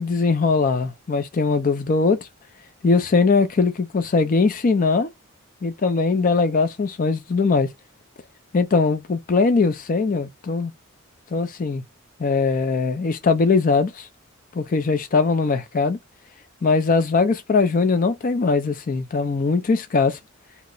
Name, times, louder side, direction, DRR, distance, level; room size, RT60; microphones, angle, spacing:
voice 1, 0.0-2.2 2.8-5.1 5.6-7.7 8.5-10.7 11.3-11.8 12.2-14.1 14.5-16.0 16.6-20.2, left 4 dB, 40° left, 0.4 m, -20 dB
2.8 x 2.1 x 3.8 m
head